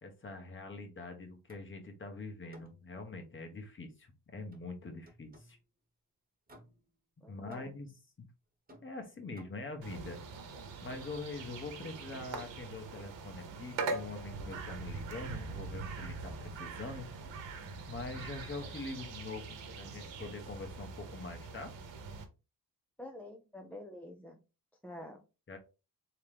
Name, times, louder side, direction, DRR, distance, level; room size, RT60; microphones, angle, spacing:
voice 1, 0.0-5.6 7.3-7.9 8.2-8.3 8.8-10.2 10.8-17.1 17.9-21.7 25.5-25.6, left 3 dB, 30° left, 5 dB, 1.0 m, -44 dB
sound 1, 1.5-1.8 2.5-2.9 4.5-5.6 6.5-7.0 7.5-8.0 8.7-9.8 10.9-11.4 12.4-12.8 13.9-14.9 16.3-16.5 16.8-17.5 18.6-18.9, equal, 20° right, 1.1 m, -58 dB
voice 2, 7.2-7.7 23.0-24.4 24.8-25.2, left 1 dB, 5° left, 2 dB, 0.4 m, -47 dB
sound 2, 9.8-22.2, right 4 dB, 90° right, 1.0 m, -42 dB
3.6 x 3.0 x 3.4 m, 0.30 s
cardioid pair, 120°, 43 cm